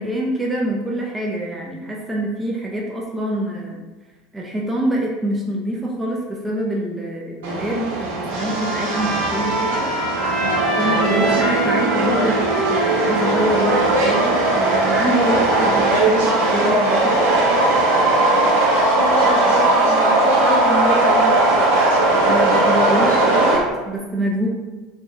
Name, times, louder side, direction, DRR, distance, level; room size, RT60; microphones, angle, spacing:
voice 1, 0.0-3.8 4.3-9.9 10.8-12.4 12.7-17.3 22.3-24.5, right 1 dB, 10° right, -2 dB, 0.5 m, -25 dB
Subway metro underground, 7.4-23.6, right 2 dB, 60° right, 0.7 m, -18 dB
Trumpet, 8.4-16.0, right 1 dB, 55° left, 1.1 m, -28 dB
voice 2, 18.9-21.3, left 2 dB, 30° left, -2 dB, 0.7 m, -26 dB
3.2 x 2.6 x 2.5 m, 1.2 s
figure-of-eight pair, 75°, 0 cm